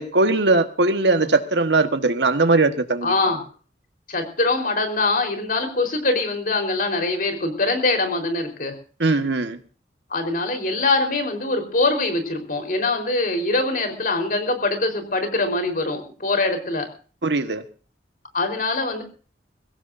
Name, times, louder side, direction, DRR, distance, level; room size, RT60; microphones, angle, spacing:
voice 1, 0.0-3.1 9.0-9.6 17.2-17.6, right 3 dB, 80° right, 8 dB, 1.4 m, -20 dB
voice 2, 3.0-3.4 4.1-8.8 10.1-16.9 18.3-19.0, left 2 dB, 55° left, 4 dB, 4.2 m, -23 dB
23.0 x 16.5 x 2.7 m, 0.38 s
head